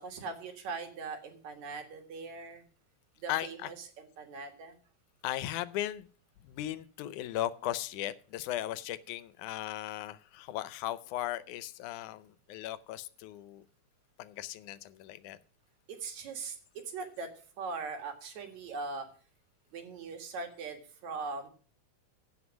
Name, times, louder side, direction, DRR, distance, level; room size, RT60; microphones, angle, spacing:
voice 1, 0.0-2.6 3.2-4.8 15.9-16.6 16.9-17.3 17.6-19.1 19.7-21.5, right 4 dB, 70° right, 5 dB, 3.1 m, -40 dB
voice 2, 3.3-3.7 5.2-6.1 6.4-13.6 14.2-15.4, left 13 dB, 85° left, 16 dB, 2.1 m, -37 dB
16.0 x 5.9 x 6.2 m, 0.42 s
omnidirectional pair, 3.5 m